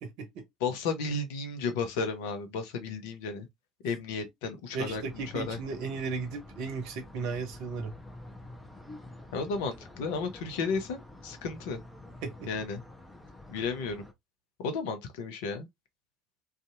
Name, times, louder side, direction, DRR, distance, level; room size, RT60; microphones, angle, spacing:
voice 1, 0.0-0.4 4.7-7.9 12.2-12.5, right 4 dB, 60° right, 0.7 m, -35 dB
voice 2, 0.6-3.5 3.8-5.6 9.3-11.8 12.5-12.8 13.5-14.1 14.6-15.7, left 4 dB, 65° left, 0.7 m, -33 dB
sound 1, 4.9-14.1, left 2 dB, 10° left, 0.7 m, -48 dB
2.6 x 2.4 x 2.5 m
figure-of-eight pair, 65°, 0 cm